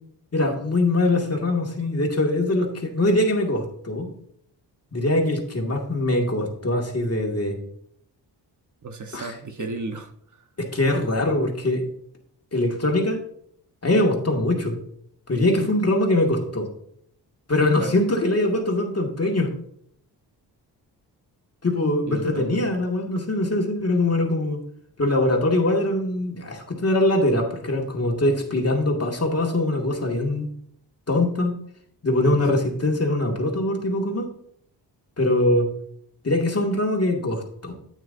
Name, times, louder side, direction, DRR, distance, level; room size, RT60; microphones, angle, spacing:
voice 1, 0.3-4.1 4.9-7.6 9.1-9.3 10.6-11.8 12.5-13.2 13.8-14.7 15.3-16.7 17.5-19.5 21.6-24.6 25.0-30.5 31.1-31.6 32.0-34.3 35.2-35.7 36.2-37.7, left 1 dB, 35° left, 1 dB, 2.2 m, -22 dB
voice 2, 8.8-10.4 15.3-15.7 17.7-17.9 22.1-22.6 32.2-32.6, right 3 dB, 45° right, 6 dB, 1.2 m, -34 dB
9.3 x 9.3 x 2.7 m, 0.67 s
cardioid pair, 65°, 41 cm